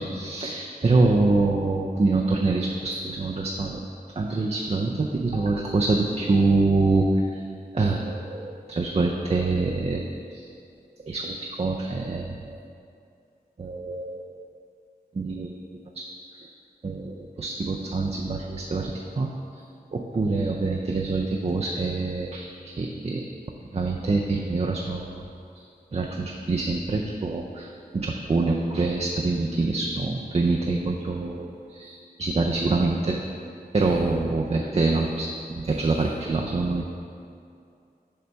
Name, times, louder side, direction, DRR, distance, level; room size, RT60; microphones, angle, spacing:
voice 1, 0.0-3.8 4.2-7.5 7.7-10.0 10.3-10.5 11.0-12.6 13.6-14.3 15.1-15.6 15.9-16.5 16.8-19.6 19.9-23.3 23.7-25.3 25.5-25.6 25.9-33.2 33.7-36.9, right 3 dB, 40° right, 0 dB, 0.4 m, -25 dB
voice 2, 32.3-32.8 34.1-34.3 34.6-35.0, left 1 dB, 80° left, -4 dB, 1.1 m, -44 dB
6.7 x 3.3 x 5.6 m, 2.5 s
wide cardioid pair, 60°, 17 cm